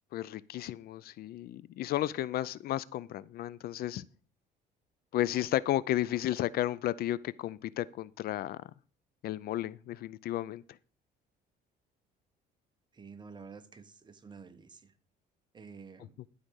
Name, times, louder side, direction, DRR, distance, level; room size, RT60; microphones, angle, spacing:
voice 1, 0.1-4.0 5.1-8.6 9.2-10.6, left 13 dB, 65° left, 0.5 m, -33 dB
voice 2, 12.9-14.9 15.5-16.1, right 5 dB, 25° right, 1.1 m, -50 dB
12.0 x 5.1 x 6.3 m
cardioid pair, 110°, 17 cm